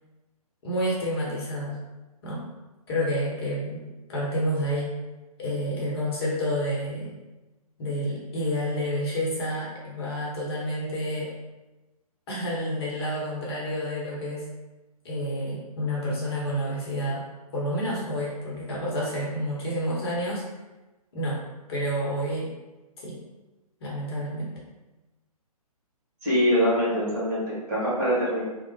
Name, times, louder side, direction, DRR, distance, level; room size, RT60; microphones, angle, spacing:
voice 1, 0.6-1.8 2.2-2.4 2.9-3.8 4.1-4.9 5.4-7.1 7.8-11.3 12.3-14.4 15.0-17.2 17.5-20.4 21.1-21.4 21.7-22.5 23.0-23.2 23.8-24.5, equal, 40° left, -5 dB, 0.8 m, -29 dB
voice 2, 26.2-28.4, equal, 30° right, -8 dB, 1.3 m, -24 dB
3.0 x 2.0 x 3.1 m, 1.1 s
figure-of-eight pair, 125°, 20 cm